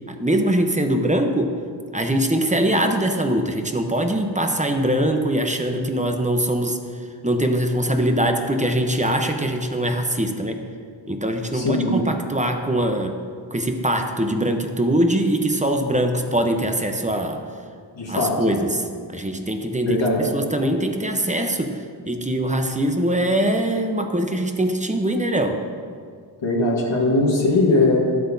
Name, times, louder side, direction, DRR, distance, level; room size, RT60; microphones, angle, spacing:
voice 1, 0.1-1.5 1.9-10.6 11.1-13.2 13.5-17.4 18.1-25.6, right 1 dB, 15° right, 4 dB, 0.8 m, -22 dB
voice 2, 11.5-11.9 17.9-18.3 19.8-20.2 26.4-28.0, left 2 dB, 75° left, -4 dB, 1.6 m, -20 dB
12.0 x 7.7 x 2.7 m, 2.1 s
cardioid pair, 45°, 44 cm